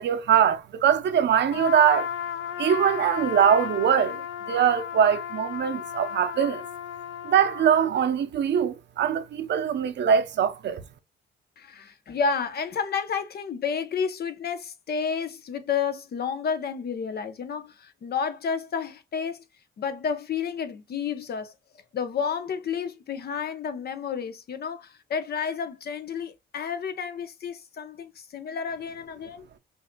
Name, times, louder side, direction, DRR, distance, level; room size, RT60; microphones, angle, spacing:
voice 1, 0.0-2.1 2.6-4.2 4.5-6.6 7.2-10.8, right 8 dB, 65° right, 0.7 m, -22 dB
Trumpet, 1.5-7.9, left 9 dB, 80° left, 0.6 m, -34 dB
voice 2, 11.6-19.5 19.8-21.5 21.9-29.4, left 6 dB, 55° left, 0.8 m, -31 dB
5.3 x 2.7 x 2.2 m
cardioid pair, 90°, 20 cm